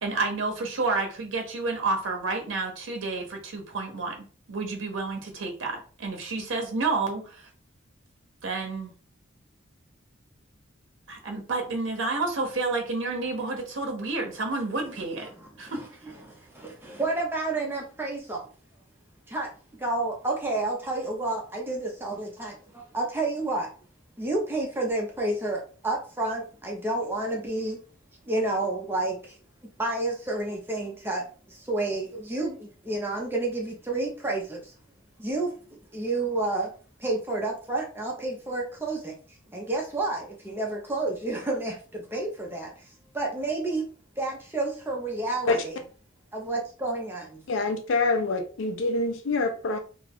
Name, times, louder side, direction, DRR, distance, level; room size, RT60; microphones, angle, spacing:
voice 1, 0.0-7.5 8.4-8.9 11.1-15.3 15.6-15.8, right 3 dB, 70° right, 2 dB, 0.7 m, -30 dB
voice 2, 15.3-15.9 16.2-18.5 19.3-19.5 19.8-23.7 24.2-27.8 28.3-29.4 29.8-34.7 35.2-35.5 35.9-36.7 37.0-39.1 39.5-42.9 43.1-43.8 44.2-45.8 46.3-47.4, right 2 dB, 10° right, -1 dB, 0.5 m, -30 dB
voice 3, 47.5-49.8, left 3 dB, 70° left, 7 dB, 0.4 m, -26 dB
2.5 x 2.3 x 3.3 m, 0.39 s
head